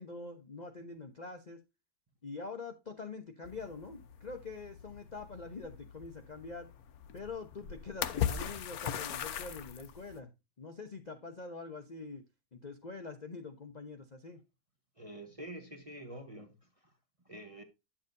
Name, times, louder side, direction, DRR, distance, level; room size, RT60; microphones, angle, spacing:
voice 1, 0.0-1.6 2.2-6.7 7.1-10.3 10.6-12.2 12.5-14.4, left 4 dB, 45° left, 0.5 m, -45 dB
sound 1, 3.4-10.2, left 9 dB, 60° left, 1.1 m, -40 dB
voice 2, 15.0-16.9 17.2-17.6, right 1 dB, 25° right, 0.8 m, -47 dB
10.0 x 7.2 x 2.6 m
omnidirectional pair, 2.0 m